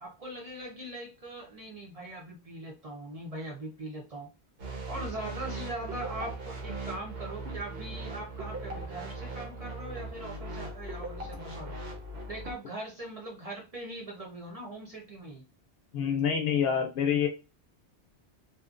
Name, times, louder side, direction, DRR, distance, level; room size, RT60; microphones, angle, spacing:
voice 1, 0.0-4.3 4.9-11.7 12.3-15.4, right 1 dB, 40° right, -2 dB, 0.6 m, -41 dB
sound 1, 4.6-12.5, right 2 dB, 65° right, 1.0 m, -39 dB
voice 2, 15.9-17.3, left 7 dB, 70° left, 4 dB, 0.8 m, -26 dB
2.6 x 2.2 x 2.4 m, 0.28 s
omnidirectional pair, 1.1 m